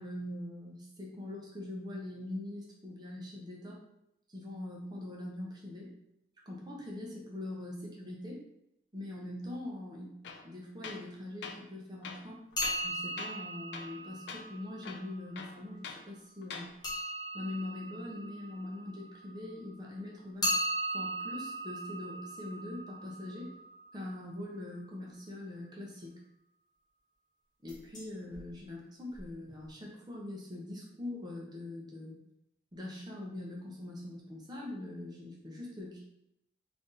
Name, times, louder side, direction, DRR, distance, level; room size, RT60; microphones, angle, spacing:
voice 1, 0.0-3.8 4.3-5.9 6.5-8.4 8.9-10.2 10.4-12.5 12.8-16.7 17.3-20.5 20.9-23.5 23.9-26.2 27.6-32.2 32.7-36.0, left 1 dB, 25° right, -2 dB, 0.7 m, -42 dB
Tools, 10.2-10.5 10.8-11.1 11.4-11.6 12.0-12.9 13.2-13.4 13.7-14.0 14.3-14.4 14.8-16.0 16.4-16.7, left 5 dB, 70° left, 0.4 m, -44 dB
sound 1, 12.5-15.3 16.8-19.5 20.4-24.2 27.7-28.0 28.3-28.4 29.1-29.2 29.5-29.6, equal, 25° left, 0.8 m, -38 dB
3.4 x 2.7 x 3.8 m, 0.80 s
head